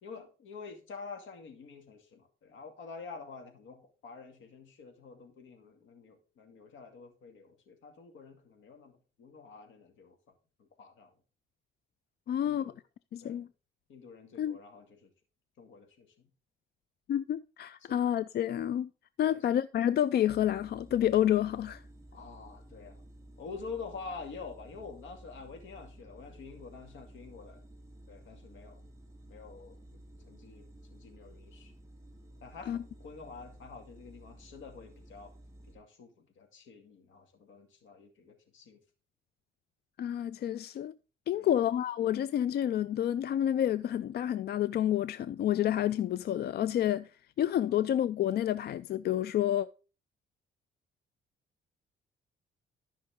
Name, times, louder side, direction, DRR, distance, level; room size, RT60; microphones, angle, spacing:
voice 1, 0.0-10.2 10.6-11.1 12.4-12.8 13.2-13.4 13.9-15.1 15.6-16.3 17.8-18.0 19.3-19.4 22.1-23.0 23.4-27.6 28.1-28.8 29.3-31.7 32.4-35.3 35.7-38.8 41.3-41.6, left 4 dB, 80° left, 2.3 m, -48 dB
voice 2, 12.3-12.7 13.1-13.5 14.4-14.6 17.1-18.9 19.2-21.8 32.7-32.8 40.0-40.9 41.3-47.1 47.4-49.7, left 11 dB, 55° left, 0.4 m, -29 dB
sound 1, 20.3-35.8, right 1 dB, 15° right, 3.0 m, -53 dB
13.5 x 5.7 x 3.7 m
cardioid pair, 90°, 20 cm